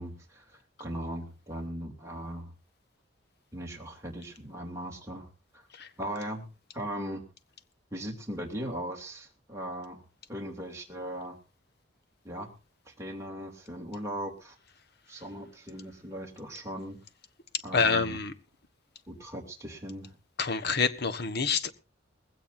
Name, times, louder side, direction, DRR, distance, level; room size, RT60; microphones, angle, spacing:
voice 1, 0.0-2.5 3.5-5.3 5.5-5.7 6.0-6.5 6.7-7.3 7.9-10.0 10.3-11.4 12.2-12.5 12.8-14.5 15.1-17.0 17.6-18.2 19.1-20.1, equal, 15° right, 2.8 m, -38 dB
voice 2, 17.7-18.3 20.4-21.7, left 5 dB, 60° left, 1.3 m, -27 dB
20.0 x 16.5 x 2.7 m
head